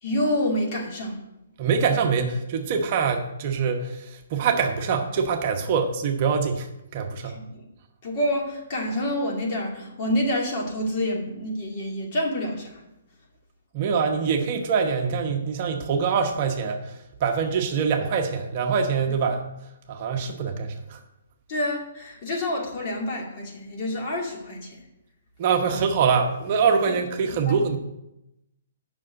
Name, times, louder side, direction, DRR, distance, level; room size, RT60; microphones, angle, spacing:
voice 1, 0.0-1.2 7.2-7.7 8.0-12.8 21.5-24.8 25.7-25.8 26.9-27.0 27.3-27.6, left 1 dB, 35° left, -1 dB, 2.4 m, -28 dB
voice 2, 1.6-7.4 13.7-19.5 19.9-21.0 25.4-27.8, right 6 dB, 40° right, 4 dB, 1.0 m, -24 dB
7.4 x 6.0 x 7.5 m, 0.90 s
hypercardioid pair, 155°, 0 cm